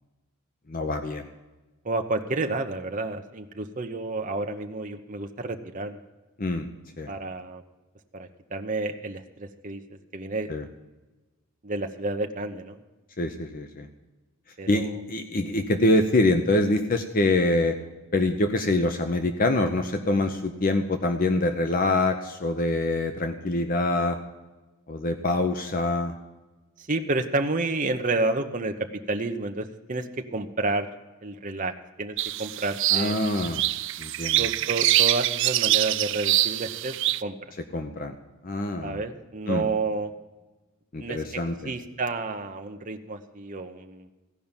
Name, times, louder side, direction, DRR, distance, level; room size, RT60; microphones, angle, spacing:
voice 1, 0.7-1.3 6.4-6.7 7.0-7.1 10.5-10.7 13.2-13.9 14.7-17.8 18.1-24.2 24.9-26.1 32.9-33.6 34.0-34.5 37.7-38.2 38.4-39.0 39.5-39.7 40.9-41.7, left 2 dB, 40° left, 6 dB, 0.8 m, -25 dB
voice 2, 1.8-6.0 7.1-7.6 8.1-10.5 11.6-12.8 14.6-15.0 26.8-28.7 29.1-30.0 30.3-30.9 31.2-31.7 32.0-33.2 34.4-36.9 37.2-37.3 38.8-40.1 41.0-41.2 41.6-44.1, right 2 dB, 40° right, 4 dB, 0.9 m, -30 dB
sound 1, 32.2-37.2, right 14 dB, 60° right, 0.4 m, -24 dB
15.5 x 5.5 x 8.8 m, 1.1 s
head